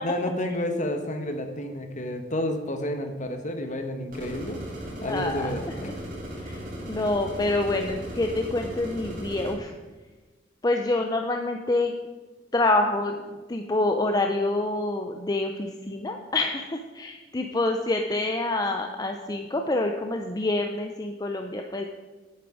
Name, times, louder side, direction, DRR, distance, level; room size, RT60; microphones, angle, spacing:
voice 1, 0.0-4.6 5.0-5.9, left 1 dB, 40° left, 6 dB, 1.1 m, -30 dB
sound 1, 4.1-9.5, equal, 45° right, 3.1 m, -37 dB
voice 2, 5.1-5.5 6.4-6.6 6.8-9.7 10.6-11.9 12.5-21.9, left 2 dB, 20° left, 4 dB, 0.5 m, -27 dB
10.5 x 8.8 x 4.9 m, 1.3 s
head